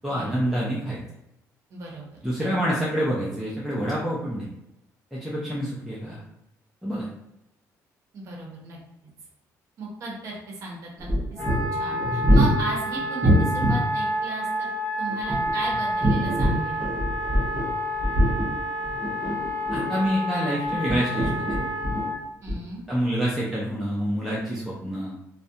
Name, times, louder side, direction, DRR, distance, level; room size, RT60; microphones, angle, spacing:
voice 1, 0.0-1.0 2.2-4.5 5.1-6.2 6.8-7.1 19.7-21.6 22.9-25.1, equal, ahead, -7 dB, 0.4 m, -27 dB
voice 2, 1.7-2.1 2.4-2.6 8.1-8.8 9.8-11.4 11.7-16.9 22.4-22.8, right 2 dB, 55° right, -2 dB, 0.7 m, -36 dB
sound 1, 11.0-13.8 15.1-17.7 18.0-20.1 20.6-22.1 22.5-22.6, equal, 20° right, 0.8 m, -23 dB
Wind instrument woodwind instrument, 11.4-22.2, equal, 20° left, 0.8 m, -29 dB
2.4 x 2.1 x 2.6 m, 0.87 s
cardioid pair, 145°, 6 cm